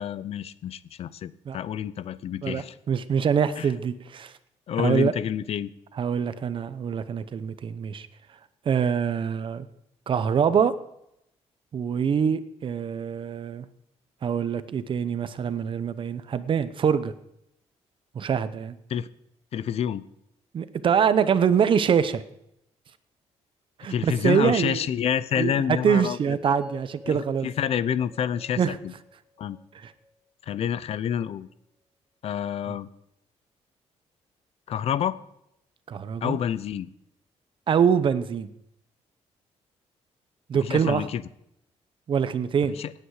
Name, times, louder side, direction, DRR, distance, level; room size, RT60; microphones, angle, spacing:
voice 1, 0.0-2.7 3.6-3.7 4.7-5.7 18.9-19.1 19.5-20.0 23.9-26.4 27.1-28.9 29.4-29.6 30.5-31.5 32.2-32.9 34.7-35.2 36.2-36.9 40.6-41.2 42.7-42.9, left 9 dB, 60° left, 17 dB, 0.6 m, -28 dB
voice 2, 2.4-4.3 4.8-5.1 5.9-8.1 8.7-9.7 10.1-10.7 11.7-13.6 14.2-17.1 18.1-18.8 20.5-22.2 23.8-24.8 25.4-27.5 28.6-28.7 29.8-29.9 35.9-36.4 37.7-38.5 40.5-41.1 42.1-42.8, right 7 dB, 45° right, 13 dB, 0.8 m, -24 dB
sound 1, 26.4-30.5, left 1 dB, 5° right, 3.8 m, -46 dB
17.5 x 9.0 x 4.8 m, 0.79 s
cardioid pair, 140°, 12 cm